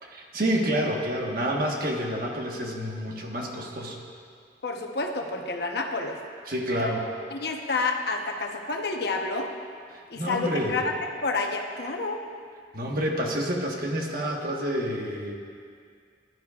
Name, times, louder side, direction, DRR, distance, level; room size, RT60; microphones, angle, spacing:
voice 1, 0.0-4.0 6.5-7.0 9.9-10.8 12.7-15.3, equal, 55° right, 0 dB, 1.4 m, -28 dB
voice 2, 4.6-6.2 6.8-6.9 7.3-9.5 10.1-12.2, left 3 dB, 65° left, 2 dB, 0.9 m, -29 dB
15.5 x 11.0 x 2.4 m, 2.2 s
head